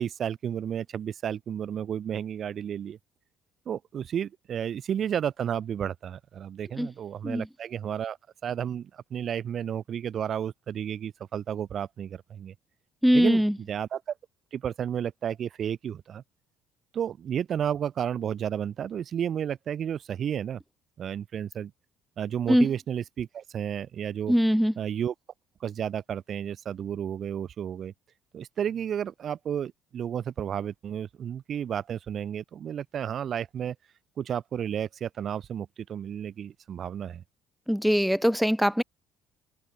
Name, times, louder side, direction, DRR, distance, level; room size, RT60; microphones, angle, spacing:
voice 1, 0.0-3.0 3.7-8.2 8.4-12.5 13.1-13.4 13.7-14.0 14.5-16.2 16.9-20.6 21.0-21.7 22.2-24.3 24.8-25.1 25.6-27.9 28.3-33.7 34.2-37.2, right 9 dB, 50° right, 1.0 m, -32 dB
voice 2, 13.0-13.6 22.5-22.7 24.3-24.7 37.7-38.8, equal, ahead, 0.5 m, -22 dB
hypercardioid pair, 65°, 0 cm